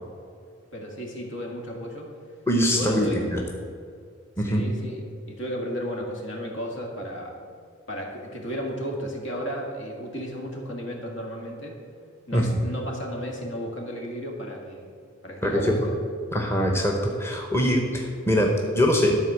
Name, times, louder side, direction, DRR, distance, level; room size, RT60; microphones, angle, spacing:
voice 1, 0.7-2.1 2.7-3.3 4.4-5.0 5.3-7.4 7.9-11.8 12.3-14.9 15.2-15.8, equal, 65° left, 0 dB, 1.9 m, -33 dB
voice 2, 2.5-3.4 4.4-4.6 12.3-12.6 15.4-15.9 16.3-19.2, equal, 10° left, 0 dB, 0.9 m, -23 dB
12.5 x 4.4 x 7.4 m, 2.3 s
head